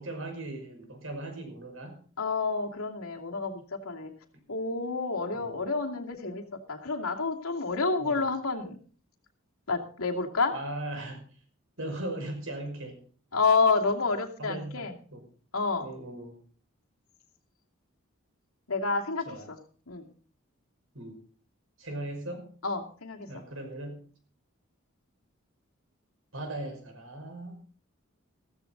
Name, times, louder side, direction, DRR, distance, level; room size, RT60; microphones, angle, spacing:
voice 1, 0.0-2.0 5.3-5.6 8.0-8.2 10.5-11.4 11.8-13.0 14.4-15.3 15.8-16.4 19.3-19.5 20.9-21.2 21.8-22.5 23.3-24.1 26.3-27.6, right 1 dB, 70° right, 4 dB, 5.7 m, -38 dB
voice 2, 2.2-4.1 4.5-8.8 9.7-10.5 13.3-15.0 15.5-15.9 18.7-19.6 19.9-20.1 22.6-23.4, left 4 dB, 85° left, 1 dB, 2.6 m, -29 dB
16.0 x 14.5 x 4.0 m, 0.42 s
head